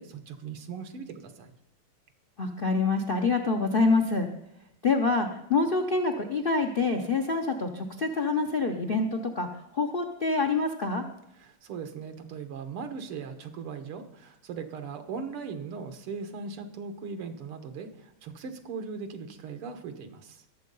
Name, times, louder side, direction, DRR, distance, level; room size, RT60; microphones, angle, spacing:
voice 1, 0.0-1.5 11.4-20.4, right 5 dB, 85° right, 8 dB, 2.2 m, -39 dB
voice 2, 2.4-4.3 4.8-11.0, left 3 dB, 55° left, 5 dB, 0.6 m, -26 dB
20.5 x 7.5 x 5.5 m, 0.80 s
omnidirectional pair, 2.4 m